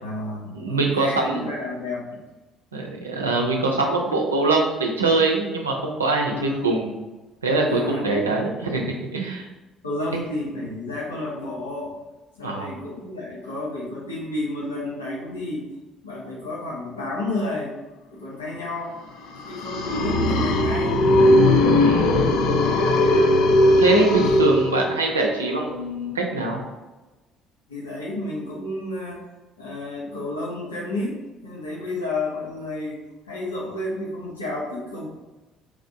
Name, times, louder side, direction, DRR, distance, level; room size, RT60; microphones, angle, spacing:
voice 1, 0.0-2.0 6.3-6.6 7.6-8.3 9.8-12.0 12.3-15.7 16.0-17.7 18.1-19.0 19.5-21.0 27.7-29.2 29.6-33.0 33.3-35.1, left 2 dB, 90° left, -5 dB, 0.8 m, -31 dB
voice 2, 0.5-1.5 2.7-6.9 7.4-9.5 12.4-12.7 21.7-22.1 23.8-26.6, right 2 dB, 90° right, 0 dB, 0.5 m, -23 dB
sound 1, 19.3-25.2, left 1 dB, 65° left, 0.4 m, -18 dB
4.7 x 2.6 x 2.6 m, 1.1 s
figure-of-eight pair, 50°, 0 cm